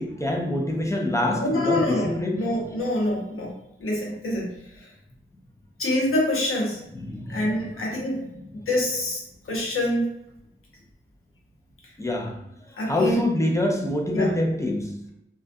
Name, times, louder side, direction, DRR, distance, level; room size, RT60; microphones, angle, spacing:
voice 1, 0.0-2.5 6.9-8.6 12.0-15.0, left 1 dB, 15° left, 0.4 m, -26 dB
voice 2, 1.3-3.5 3.8-4.5 4.8-4.9 5.8-6.8 7.3-8.2 8.5-9.2 9.5-10.1 12.8-13.2 14.1-14.3, left 1 dB, 85° left, 0.7 m, -26 dB
2.3 x 2.2 x 2.5 m
wide cardioid pair, 90°, 21 cm